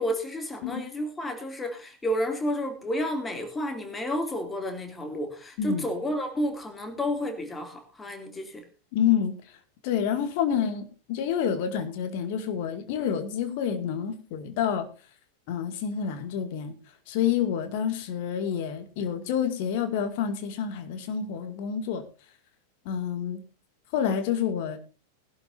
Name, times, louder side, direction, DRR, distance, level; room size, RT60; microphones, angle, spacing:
voice 1, 0.0-8.6, equal, 10° left, 2.8 m, -31 dB
voice 2, 8.9-9.4 9.8-14.9 15.5-16.7 17.1-22.0 22.8-23.4 23.9-24.8, left 8 dB, 50° left, 2.3 m, -28 dB
20.5 x 12.0 x 2.7 m
figure-of-eight pair, 90°, 0 cm